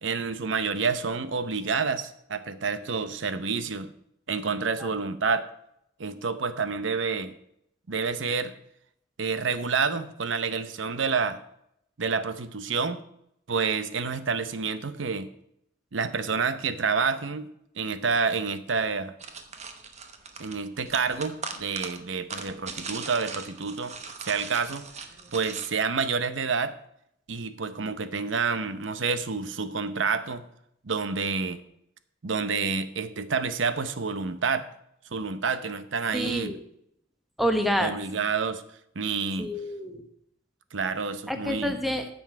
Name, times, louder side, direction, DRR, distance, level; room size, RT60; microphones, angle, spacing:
voice 1, 0.0-3.9 4.3-5.4 6.0-7.3 7.9-8.5 9.2-11.4 12.0-13.0 13.5-15.3 15.9-17.5 17.8-19.1 20.4-23.9 24.2-24.9 25.3-26.7 27.3-30.4 30.8-31.6 32.2-34.7 35.1-36.5 37.8-38.6 38.9-39.5 40.7-41.7, right 5 dB, 75° right, 12 dB, 0.8 m, -28 dB
sound 1, 19.2-25.7, right 5 dB, 35° right, 1.0 m, -39 dB
voice 2, 36.1-36.6 37.4-37.9 39.4-40.0 41.3-42.1, equal, ahead, 6 dB, 1.1 m, -28 dB
9.3 x 7.1 x 5.7 m, 0.74 s
head